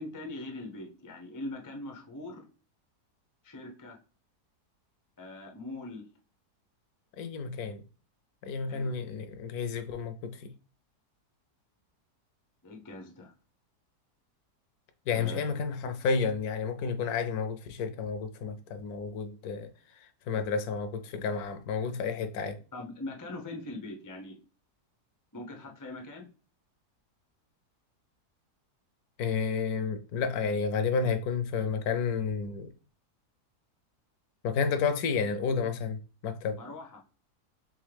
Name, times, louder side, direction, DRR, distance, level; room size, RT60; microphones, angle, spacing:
voice 1, 0.0-2.4 3.4-4.0 5.2-6.1 8.7-8.9 12.6-13.3 15.1-15.4 22.7-24.4 25.3-26.3 36.6-37.0, left 2 dB, 30° left, 0.3 m, -41 dB
voice 2, 7.2-7.8 8.4-10.5 15.1-19.7 20.3-22.6 29.2-32.7 34.4-36.6, left 5 dB, 75° left, 1.0 m, -31 dB
3.7 x 3.4 x 3.3 m
omnidirectional pair, 1.7 m